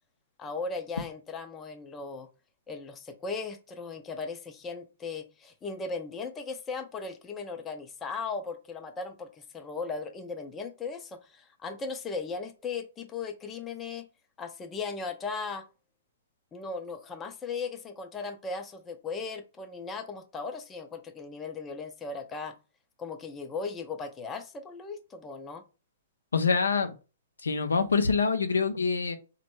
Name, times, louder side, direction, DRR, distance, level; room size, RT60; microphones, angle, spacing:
voice 1, 0.4-2.3 2.7-14.1 14.4-15.6 16.5-22.6 23.0-25.6, left 4 dB, 20° left, 0.5 m, -37 dB
voice 2, 26.3-26.9 27.4-29.2, left 5 dB, 80° left, 0.5 m, -25 dB
4.1 x 2.1 x 3.1 m
figure-of-eight pair, 115°, 0 cm